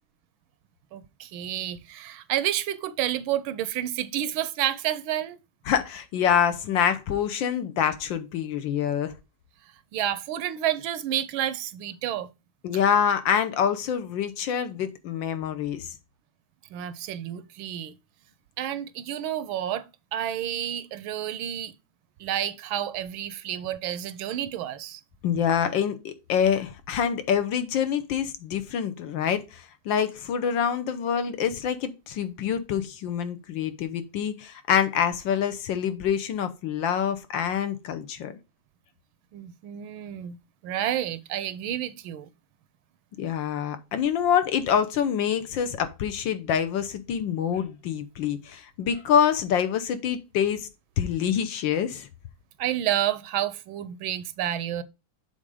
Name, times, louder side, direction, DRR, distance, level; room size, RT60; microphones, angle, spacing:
voice 1, 0.9-5.4 9.9-12.3 16.7-17.9 18.6-19.8 20.1-21.7 22.2-25.0 39.3-40.4 40.6-42.3 52.6-54.8, right 11 dB, 80° right, 1.4 m, -30 dB
voice 2, 5.7-9.1 12.6-15.9 25.2-38.4 43.2-50.7 51.0-52.1, left 8 dB, 70° left, 1.4 m, -26 dB
7.4 x 4.0 x 4.8 m
omnidirectional pair, 2.3 m